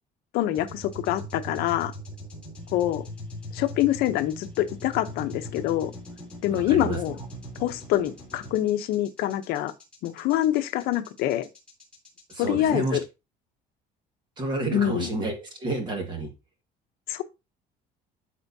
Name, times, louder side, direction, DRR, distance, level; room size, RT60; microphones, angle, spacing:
voice 1, 0.3-1.9 2.7-3.0 3.5-5.9 6.4-7.2 7.6-9.7 10.0-11.5 12.4-13.0 14.7-15.1 17.1-17.2, left 13 dB, 65° left, 0.8 m, -25 dB
sound 1, 0.5-12.5, equal, 5° left, 3.3 m, -40 dB
voice 2, 6.5-7.0 12.3-13.0 14.4-16.3, right 2 dB, 30° right, 1.7 m, -30 dB
13.0 x 4.5 x 2.7 m
cardioid pair, 180°, 17 cm